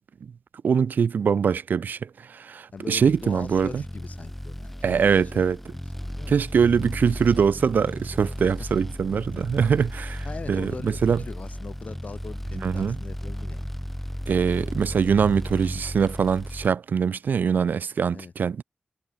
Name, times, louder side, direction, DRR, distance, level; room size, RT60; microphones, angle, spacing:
voice 1, 0.6-3.8 4.8-5.6 6.3-11.2 12.6-13.0 14.3-18.6, right 6 dB, 90° right, 0.4 m, -23 dB
voice 2, 2.7-5.4 5.7-6.3 9.3-9.4 10.2-13.7 18.1-18.3, left 4 dB, 60° left, 1.9 m, -41 dB
sound 1, 2.9-16.7, equal, 5° left, 1.0 m, -35 dB
wide cardioid pair, 115°, 3 cm